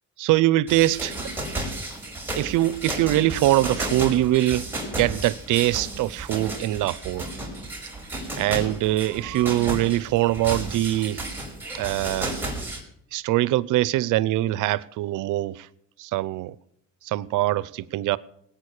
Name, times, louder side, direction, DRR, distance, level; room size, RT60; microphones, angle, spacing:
voice 1, 0.2-1.2 2.4-7.3 8.4-11.2 11.7-12.4 13.1-15.7 16.0-16.6 17.0-18.2, right 15 dB, 90° right, 0.6 m, -23 dB
sound 1, 0.7-12.8, right 1 dB, 5° right, 5.1 m, -33 dB
18.5 x 9.1 x 6.5 m
cardioid pair, 90°, 30 cm